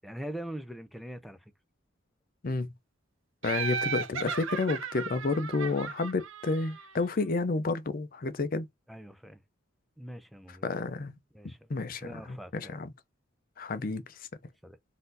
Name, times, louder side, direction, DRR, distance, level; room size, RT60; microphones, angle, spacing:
voice 1, 0.0-1.5 8.9-9.4 10.0-10.7 11.3-11.7 12.0-12.8 14.6-14.8, right 1 dB, ahead, 0.5 m, -42 dB
voice 2, 3.4-8.7 10.6-11.2 11.4-12.9 13.6-14.2, left 3 dB, 45° left, 0.5 m, -31 dB
Laughter, 3.4-7.1, right 6 dB, 90° right, 0.8 m, -36 dB
4.1 x 2.7 x 3.8 m
head